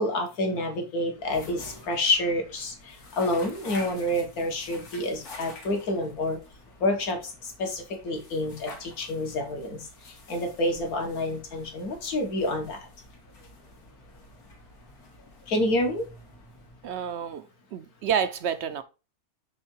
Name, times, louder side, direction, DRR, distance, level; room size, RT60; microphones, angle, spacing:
voice 1, 0.0-6.4 6.8-12.8 15.5-16.0, left 1 dB, 75° left, 2.0 m, -28 dB
sound 1, 1.1-17.3, left 2 dB, 90° left, 2.2 m, -48 dB
voice 2, 16.8-18.8, right 7 dB, 65° right, 0.7 m, -29 dB
6.2 x 3.7 x 4.5 m
omnidirectional pair, 1.6 m